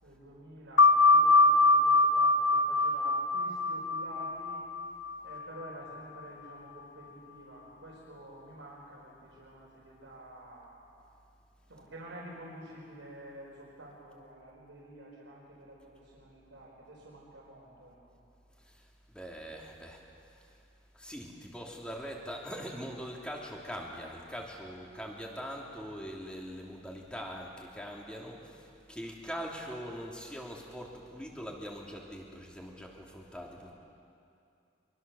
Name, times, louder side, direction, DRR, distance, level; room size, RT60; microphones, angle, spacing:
voice 1, 0.0-4.6 5.2-10.7 11.7-18.2, right 1 dB, 85° right, -6 dB, 4.8 m, -49 dB
sound 1, 0.8-6.0, left 2 dB, 90° left, 0.8 m, -24 dB
voice 2, 18.6-20.0 20.3-20.6 20.9-33.7, equal, 5° left, -2 dB, 2.9 m, -42 dB
24.5 x 23.5 x 7.1 m, 2.6 s
head